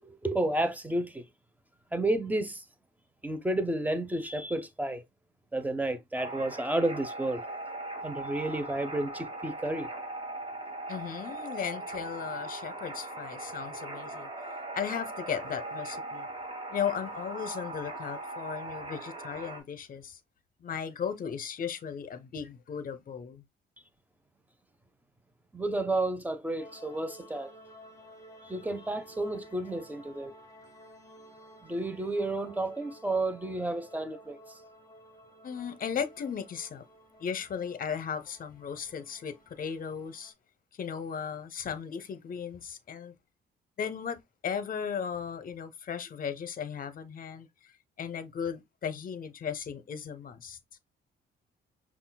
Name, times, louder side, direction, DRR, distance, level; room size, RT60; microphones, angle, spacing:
voice 1, 0.0-1.2 1.9-2.6 3.2-5.0 5.5-7.4 8.0-9.9 25.5-27.5 28.4-30.3 31.6-34.4, right 2 dB, 10° right, 0.6 m, -31 dB
sound 1, 6.1-19.6, right 2 dB, 25° right, 1.3 m, -40 dB
voice 2, 10.9-14.3 14.7-16.3 16.7-20.2 20.6-23.4 35.4-36.8 37.2-40.3 40.8-43.1 43.8-47.5 48.0-50.6, left 7 dB, 45° left, 0.7 m, -36 dB
sound 2, 26.6-40.3, equal, 15° left, 0.9 m, -54 dB
5.4 x 2.4 x 2.2 m
cardioid pair, 90°, 20 cm